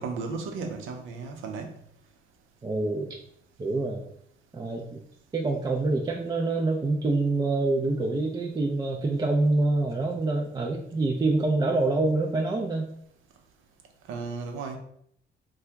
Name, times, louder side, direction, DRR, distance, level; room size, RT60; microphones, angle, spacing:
voice 1, 0.0-1.7 14.1-14.8, right 4 dB, 90° right, 0.6 m, -34 dB
voice 2, 2.6-3.1 3.6-4.1 4.5-5.0 5.3-12.9, right 2 dB, 20° right, 0.3 m, -26 dB
2.8 x 2.3 x 3.3 m
cardioid pair, 90°, 20 cm